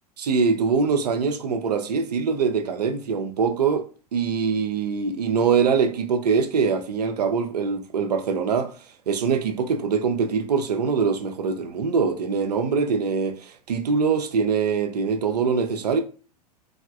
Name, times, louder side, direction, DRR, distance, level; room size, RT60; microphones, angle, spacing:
voice 1, 0.2-3.9 4.1-8.7 9.1-16.0, right 5 dB, 75° right, 0.5 m, -23 dB
3.4 x 2.2 x 2.5 m
figure-of-eight pair, 90°, 21 cm